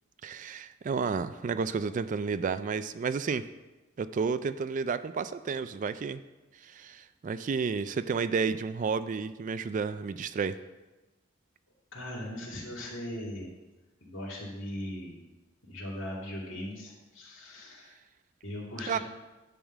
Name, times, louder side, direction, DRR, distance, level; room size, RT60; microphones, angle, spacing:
voice 1, 0.2-3.5 4.0-6.2 6.6-10.6 18.9-19.0, right 5 dB, 40° right, 13 dB, 0.3 m, -31 dB
voice 2, 11.9-13.5 14.0-15.2 15.6-18.0 18.4-19.0, left 1 dB, 70° left, -4 dB, 2.6 m, -39 dB
10.5 x 3.7 x 7.2 m, 1.1 s
head